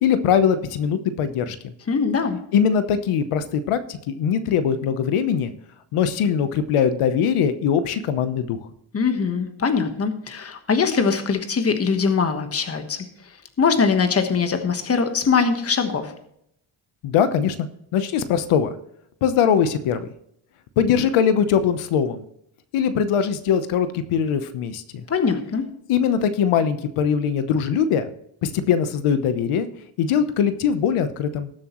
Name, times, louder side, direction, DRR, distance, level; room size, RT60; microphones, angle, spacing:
voice 1, 0.0-1.7 2.5-5.5 5.9-8.6 17.0-17.7 17.9-18.7 19.2-20.1 20.8-22.2 22.7-25.0 25.9-28.1 28.4-29.7 30.0-31.5, left 7 dB, 80° left, 10 dB, 1.0 m, -21 dB
voice 2, 1.9-2.4 8.9-13.0 13.6-16.1 25.1-25.6, left 5 dB, 30° left, 7 dB, 1.3 m, -22 dB
19.5 x 7.6 x 3.0 m, 0.74 s
cardioid pair, 160°, 50 cm